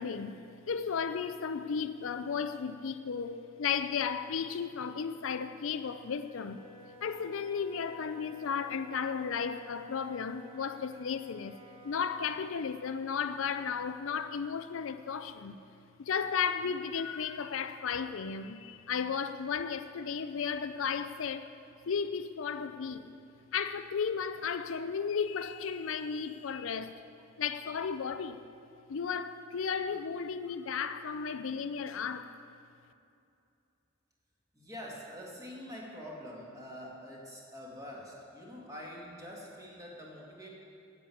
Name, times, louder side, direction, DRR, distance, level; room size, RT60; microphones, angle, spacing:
voice 1, 0.0-6.6 7.0-15.6 16.0-21.5 21.9-23.0 23.5-27.0 27.4-28.4 28.9-32.3, left 6 dB, 65° left, 0.4 m, -34 dB
Wind instrument woodwind instrument, 5.6-12.8, equal, 35° right, 3.5 m, -54 dB
voice 2, 34.5-40.5, equal, 15° right, 2.3 m, -45 dB
9.6 x 8.6 x 8.7 m
head